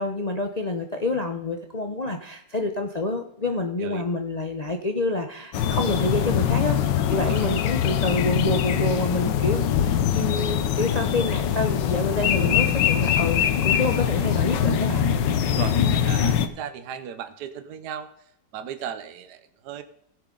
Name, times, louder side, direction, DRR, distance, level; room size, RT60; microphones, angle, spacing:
voice 1, 0.0-6.8 7.1-15.1, left 2 dB, 50° left, 4 dB, 0.4 m, -27 dB
sound 1, 5.5-16.5, left 9 dB, 80° left, 1.4 m, -23 dB
voice 2, 7.1-7.5 15.4-18.1 18.5-19.8, right 9 dB, 70° right, 10 dB, 1.2 m, -36 dB
16.0 x 6.9 x 3.8 m, 0.73 s
omnidirectional pair, 1.9 m